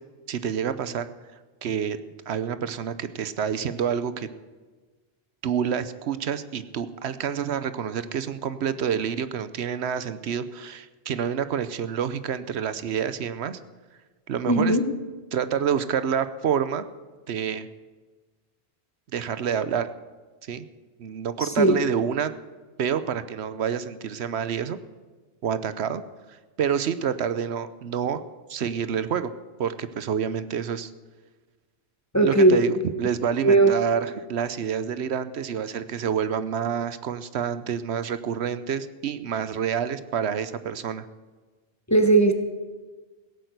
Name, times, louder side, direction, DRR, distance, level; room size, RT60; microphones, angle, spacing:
voice 1, 0.3-1.1 1.6-2.0 2.3-4.3 5.4-13.6 14.3-14.8 15.3-16.9 17.3-17.7 19.1-19.9 20.5-20.7 21.0-22.3 22.8-24.8 25.4-26.0 26.6-28.2 28.5-29.3 29.6-30.9 32.2-41.0, right 8 dB, 80° right, 13 dB, 1.0 m, -28 dB
voice 2, 14.5-14.8 21.6-21.8 32.1-32.6 33.4-33.7 41.9-42.3, right 2 dB, 15° left, 5 dB, 1.2 m, -17 dB
16.5 x 8.9 x 8.0 m, 1.3 s
omnidirectional pair, 1.1 m